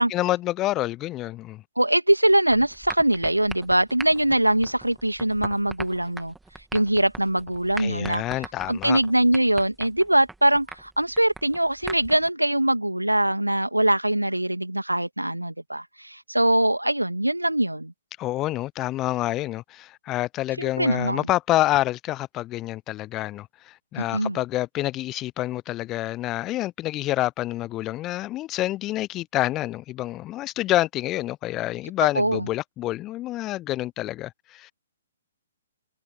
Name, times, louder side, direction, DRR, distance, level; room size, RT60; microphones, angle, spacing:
voice 1, 0.0-1.6 7.8-9.0 18.2-34.7, left 15 dB, 20° left, 0.9 m, -27 dB
voice 2, 1.8-6.3 6.7-8.2 8.7-17.9 20.6-21.2 24.0-24.4 32.2-32.5, right 1 dB, 85° right, 2.4 m, -22 dB
sound 1, 2.5-12.3, right 3 dB, 5° right, 2.5 m, -41 dB
figure-of-eight pair, 125°, 0 cm